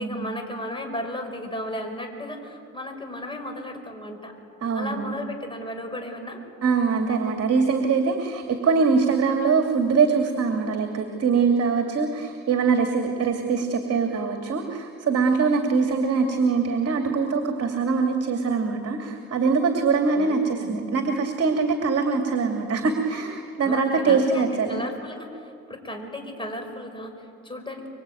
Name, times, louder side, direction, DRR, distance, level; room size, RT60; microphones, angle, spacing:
voice 1, 0.0-4.3 4.7-6.4 20.1-20.8 23.6-27.9, left 1 dB, 15° left, 4 dB, 5.1 m, -35 dB
voice 2, 4.6-5.2 6.6-24.8, right 5 dB, 55° right, 4 dB, 2.5 m, -23 dB
25.0 x 24.0 x 9.2 m, 2.4 s
cardioid pair, 90°, 30 cm